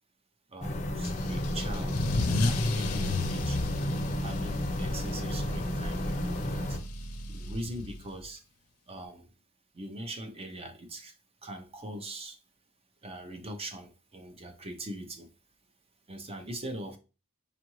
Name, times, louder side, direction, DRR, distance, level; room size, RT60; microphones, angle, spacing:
voice 1, 0.5-2.0 2.4-3.6 4.2-6.8 7.3-8.4 8.9-9.3 9.7-11.1 11.4-12.4 13.0-15.3 16.1-17.0, right 1 dB, 25° right, 0.6 m, -41 dB
sound 1, 0.6-6.8, left 1 dB, 30° left, 0.6 m, -32 dB
Car / Engine starting / Accelerating revving vroom, 1.0-8.2, left 2 dB, 80° left, 0.6 m, -34 dB
5.3 x 2.5 x 3.0 m
head